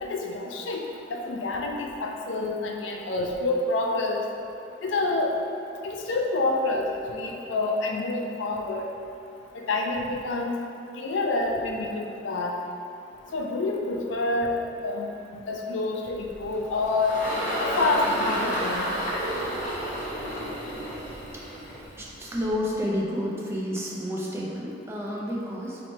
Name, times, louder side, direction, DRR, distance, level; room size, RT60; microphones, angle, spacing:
voice 1, 0.0-4.2 4.8-5.3 5.8-8.9 9.5-10.6 10.9-12.6 13.3-14.6 14.8-17.2 17.6-18.9, left 2 dB, 90° left, 0 dB, 0.4 m, -28 dB
Engine, 16.2-22.8, equal, 45° left, 0.8 m, -31 dB
voice 2, 22.0-25.8, equal, 15° right, -4 dB, 0.4 m, -30 dB
3.0 x 2.8 x 4.3 m, 2.7 s
head